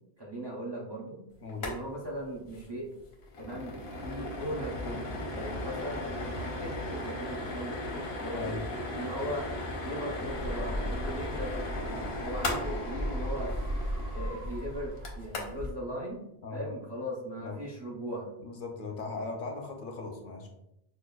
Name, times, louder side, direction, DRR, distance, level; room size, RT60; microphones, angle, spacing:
voice 1, 0.2-1.2 1.6-2.9 3.4-6.2 6.6-8.6 8.9-9.5 9.8-13.5 14.1-16.2 16.5-18.3, equal, 35° right, -3 dB, 0.4 m, -38 dB
sound 1, 1.5-1.8 2.0-2.1 2.5-2.7 3.0-15.7, left 1 dB, 80° left, 1.0 m, -37 dB
voice 2, 8.3-8.6 16.4-16.7 17.4-17.6 18.4-20.5, left 3 dB, 65° left, 3 dB, 0.7 m, -38 dB
sound 2, 10.2-15.5, equal, 80° right, 1.0 m, -36 dB
5.1 x 2.2 x 2.2 m, 0.86 s
omnidirectional pair, 1.1 m